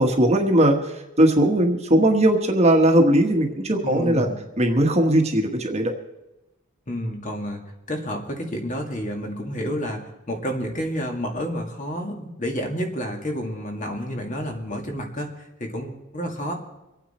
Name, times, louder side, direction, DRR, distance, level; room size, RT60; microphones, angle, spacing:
voice 1, 0.0-4.3 4.6-5.9, right 1 dB, 30° right, 3 dB, 1.4 m, -19 dB
voice 2, 3.8-4.4 6.9-7.6 7.9-16.6, equal, 35° left, 2 dB, 2.2 m, -30 dB
25.0 x 9.1 x 4.3 m, 0.97 s
head